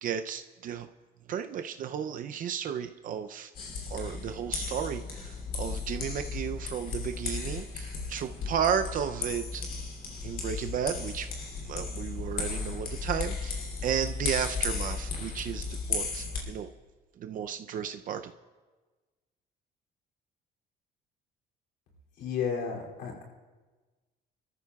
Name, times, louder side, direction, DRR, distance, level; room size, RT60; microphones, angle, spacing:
voice 1, 0.0-0.9 1.3-3.5 3.9-9.6 10.2-11.3 11.6-16.7 17.2-18.3, right 8 dB, 55° right, 8 dB, 0.5 m, -33 dB
sound 1, 3.6-16.4, left 4 dB, 60° left, 3.0 m, -35 dB
voice 2, 22.2-23.2, left 6 dB, 90° left, -2 dB, 2.8 m, -32 dB
25.5 x 13.5 x 2.3 m, 1.3 s
cardioid pair, 110°, 17 cm